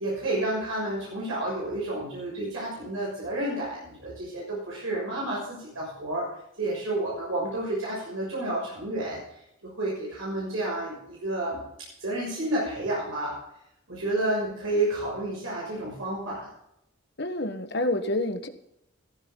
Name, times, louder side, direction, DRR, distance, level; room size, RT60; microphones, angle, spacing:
voice 1, 0.0-6.3 6.6-11.6 12.0-13.3 13.9-16.5, right 1 dB, 80° right, -6 dB, 6.6 m, -30 dB
voice 2, 17.2-18.5, left 1 dB, 55° left, 8 dB, 1.3 m, -28 dB
15.5 x 14.5 x 3.9 m, 0.78 s
head